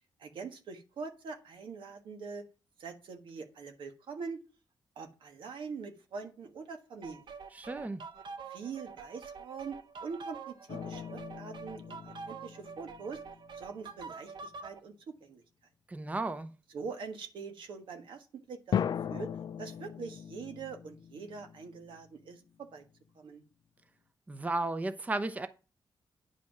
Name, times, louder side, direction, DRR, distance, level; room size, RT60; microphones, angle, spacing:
voice 1, 0.2-2.4 2.8-4.4 4.9-7.2 8.5-13.2 13.5-15.4 16.7-18.8 19.1-22.8 23.1-23.4, right 5 dB, 90° right, 1.5 m, -43 dB
sound 1, 7.0-14.8, right 5 dB, 65° right, 0.9 m, -46 dB
voice 2, 7.5-8.0 15.9-16.5 24.3-25.5, right 2 dB, 20° right, 0.6 m, -34 dB
sound 2, 10.7-13.8 18.7-22.3, left 8 dB, 60° left, 0.4 m, -38 dB
9.6 x 5.1 x 5.9 m
wide cardioid pair, 120°, 8 cm